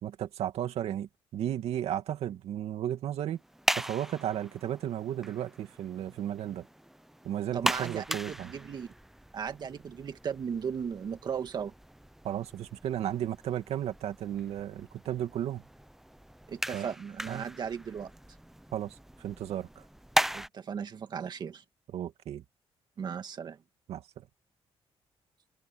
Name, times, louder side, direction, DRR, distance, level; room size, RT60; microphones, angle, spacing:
voice 1, 0.0-3.4 3.8-6.7 7.2-8.5 12.2-15.6 16.7-16.9 17.3-17.5 18.7-19.8 21.9-22.4 23.9-24.3, right 11 dB, 85° right, 2.3 m, -34 dB
sound 1, 3.4-20.5, right 1 dB, 5° right, 0.6 m, -38 dB
voice 2, 7.5-8.9 9.3-11.7 16.5-18.1 20.3-21.6 23.0-23.6, right 7 dB, 45° right, 2.0 m, -36 dB
wide cardioid pair, 165°, 10 cm